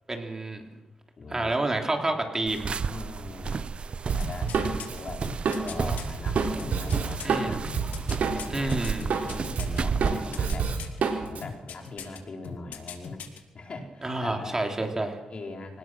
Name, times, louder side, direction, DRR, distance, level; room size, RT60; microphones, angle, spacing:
voice 1, 0.1-0.6 1.3-2.7 7.2-7.6 8.5-9.1 14.0-15.2, right 2 dB, 20° right, 3 dB, 3.3 m, -29 dB
voice 2, 1.2-1.5 2.9-3.7 4.1-4.6 4.9-5.3 5.6-7.7 8.2-10.7 11.3-13.3 13.5-14.6 15.3-15.8, left 3 dB, 45° left, 3 dB, 4.3 m, -41 dB
sound 1, 2.5-10.5, right 5 dB, 40° right, 0.7 m, -33 dB
Drum kit, 4.1-8.6 8.9-11.4, right 5 dB, 70° right, 4.3 m, -28 dB
sound 2, 4.2-6.1 6.6-9.8 10.1-11.0 11.4-12.2 12.4-13.4 13.7-13.8, left 7 dB, 90° left, 2.9 m, -40 dB
25.5 x 19.5 x 6.3 m, 1.1 s
cardioid pair, 105°, 3 cm